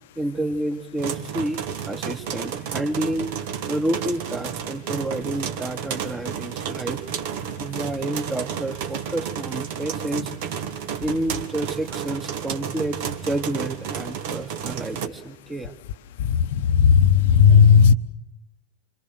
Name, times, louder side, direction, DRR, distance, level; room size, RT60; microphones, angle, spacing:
voice 1, 0.2-7.2 7.6-10.3 11.0-15.8, right 1 dB, 10° right, 2.0 m, -29 dB
sound 1, 1.0-15.1, right 8 dB, 50° right, 1.8 m, -31 dB
voice 2, 16.3-17.9, left 7 dB, 55° left, 1.0 m, -14 dB
26.5 x 26.0 x 8.0 m
figure-of-eight pair, 90°, 0 cm